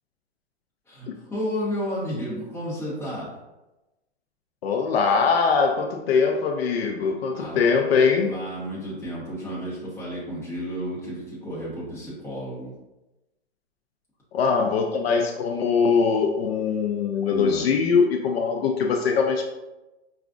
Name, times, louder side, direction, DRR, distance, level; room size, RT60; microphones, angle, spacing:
voice 1, 0.9-3.3 7.3-7.6 8.3-12.7 17.3-17.6, equal, 5° left, -8 dB, 0.9 m, -32 dB
voice 2, 4.6-8.3 14.3-19.4, left 5 dB, 60° left, 3 dB, 0.5 m, -22 dB
4.9 x 2.4 x 2.4 m, 1.0 s
hypercardioid pair, 155°, 34 cm